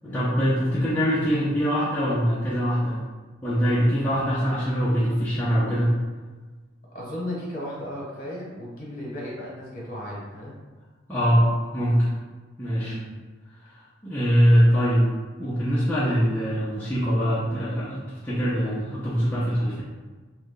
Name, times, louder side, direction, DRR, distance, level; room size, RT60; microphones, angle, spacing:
voice 1, 0.0-3.0 3.4-5.9 11.1-11.5 11.7-12.1 12.6-13.0 14.0-15.0 15.4-19.8, equal, 10° left, -10 dB, 0.6 m, -23 dB
voice 2, 6.9-10.6 12.8-13.1 14.5-14.7, left 1 dB, 45° left, -5 dB, 1.2 m, -35 dB
3.2 x 2.5 x 3.8 m, 1.3 s
head